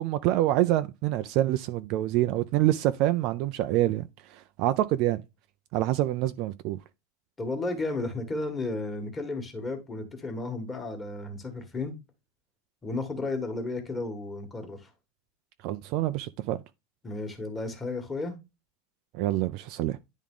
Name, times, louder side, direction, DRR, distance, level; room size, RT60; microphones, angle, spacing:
voice 1, 0.0-5.2 5.7-6.8 15.6-16.6 19.1-20.0, right 14 dB, 40° right, 0.4 m, -26 dB
voice 2, 7.4-11.9 12.8-14.9 17.0-18.4, left 2 dB, 15° left, 1.5 m, -33 dB
10.0 x 3.6 x 3.7 m
supercardioid pair, 170°, 0 cm